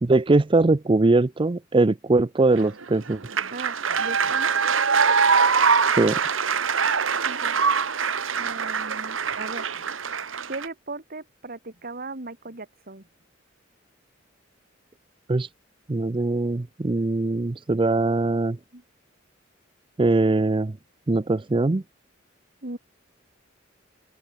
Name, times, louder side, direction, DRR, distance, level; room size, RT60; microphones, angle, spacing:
voice 1, 0.0-3.2 6.0-6.2 15.3-15.5 15.9-18.6 20.0-20.8 21.1-21.8, right 2 dB, 25° right, 0.5 m, -21 dB
sound 1, 2.6-10.7, right 6 dB, 80° right, 1.7 m, -23 dB
voice 2, 3.4-4.5 7.2-7.6 8.3-9.8 10.4-13.1 18.7-18.8 22.6-22.8, right 2 dB, 50° right, 2.6 m, -38 dB
open air
head